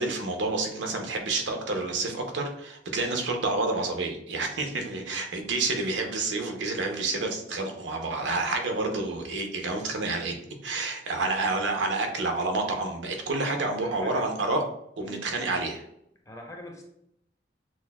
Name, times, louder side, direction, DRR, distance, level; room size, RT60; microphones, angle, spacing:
voice 1, 0.0-10.3 10.6-14.6 15.0-15.8, right 3 dB, 85° right, 3 dB, 0.6 m, -29 dB
voice 2, 13.8-14.3 15.0-15.2 16.2-16.9, left 1 dB, 20° left, 1 dB, 0.6 m, -42 dB
6.0 x 2.0 x 2.2 m, 0.75 s
head